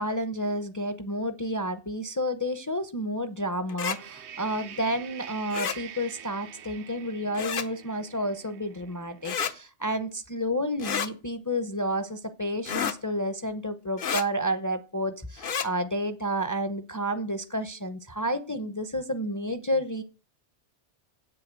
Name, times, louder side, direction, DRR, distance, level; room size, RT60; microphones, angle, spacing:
voice 1, 0.0-20.0, equal, 20° left, 10 dB, 0.7 m, -30 dB
sound 1, 3.7-4.0 5.5-5.8 7.3-7.7 9.2-9.5 10.8-11.1 12.6-13.0 14.0-14.2 15.4-15.7, left 7 dB, 55° left, 0.9 m, -30 dB
E-Gitarre - Slides, 3.8-9.6, right 9 dB, 75° right, 1.0 m, -46 dB
8.4 x 7.8 x 7.5 m, 0.34 s
omnidirectional pair, 1.1 m